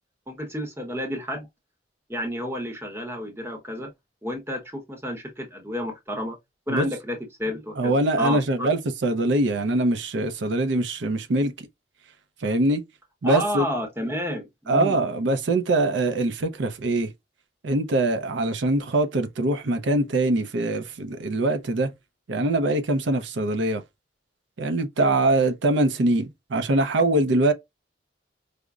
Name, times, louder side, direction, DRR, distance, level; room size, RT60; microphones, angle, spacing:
voice 1, 0.3-1.5 2.1-3.9 4.2-6.4 6.7-8.7 13.2-15.0, equal, 15° right, 0.8 m, -31 dB
voice 2, 7.8-11.5 12.4-12.8 13.2-13.7 14.7-17.1 17.6-21.9 22.3-23.8 24.6-27.5, right 2 dB, 70° right, 0.5 m, -23 dB
4.9 x 2.1 x 2.3 m
head